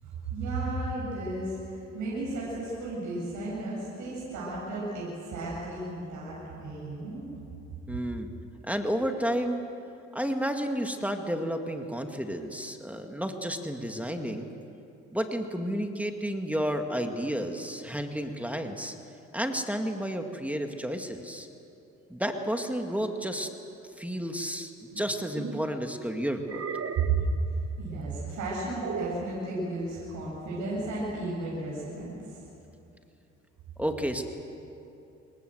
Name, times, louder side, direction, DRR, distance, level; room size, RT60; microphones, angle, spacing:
voice 1, 0.0-7.3 27.0-27.2 27.8-32.4, right 3 dB, 75° right, -5 dB, 7.7 m, -33 dB
voice 2, 7.9-8.3 8.6-9.6 10.1-14.5 15.1-19.0 19.3-21.5 22.1-23.5 24.0-26.6 33.8-34.2, equal, 5° right, 4 dB, 1.9 m, -31 dB
sound 1, 24.9-25.7 26.4-27.3 28.8-29.3, right 6 dB, 50° right, 1.4 m, -36 dB
25.5 x 22.0 x 8.0 m, 2.8 s
cardioid pair, 90°, 30 cm